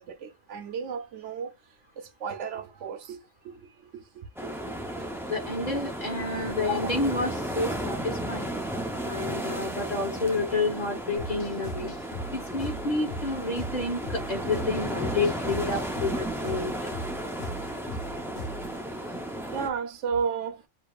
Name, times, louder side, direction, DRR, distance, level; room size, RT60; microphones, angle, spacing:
voice 1, 0.0-1.5 2.0-5.1 17.6-18.0 18.5-18.6 19.0-19.1 19.4-20.6, right 6 dB, 80° right, 1.0 m, -35 dB
sound 1, 4.4-19.7, right 1 dB, 5° right, 0.4 m, -34 dB
voice 2, 5.3-8.6 9.0-11.9 12.3-16.9, left 3 dB, 35° left, 1.1 m, -29 dB
sound 2, 11.2-18.8, equal, 65° left, 1.1 m, -39 dB
6.8 x 2.9 x 2.3 m
omnidirectional pair, 1.2 m